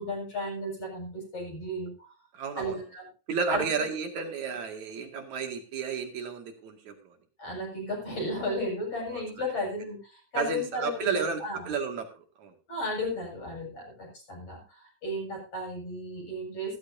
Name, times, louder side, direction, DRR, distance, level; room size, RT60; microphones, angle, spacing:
voice 1, 0.0-2.1 2.6-3.0 3.5-3.6 7.4-11.7 12.7-16.8, left 1 dB, 50° left, -1 dB, 8.2 m, -34 dB
voice 2, 2.3-2.8 3.3-7.2 9.1-9.2 10.4-12.5, right 5 dB, 70° right, 5 dB, 3.6 m, -32 dB
15.5 x 14.0 x 2.7 m, 0.34 s
omnidirectional pair, 3.4 m